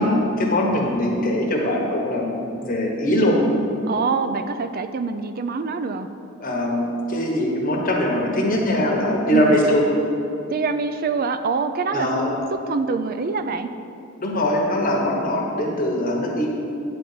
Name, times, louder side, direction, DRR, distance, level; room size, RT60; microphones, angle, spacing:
voice 1, 0.0-3.4 6.4-9.8 11.9-12.3 14.2-16.5, left 1 dB, 45° left, -1 dB, 1.3 m, -21 dB
voice 2, 3.9-6.1 9.3-9.7 10.5-12.1 12.5-13.7, right 4 dB, 45° right, 10 dB, 0.4 m, -25 dB
9.2 x 4.1 x 6.7 m, 2.7 s
head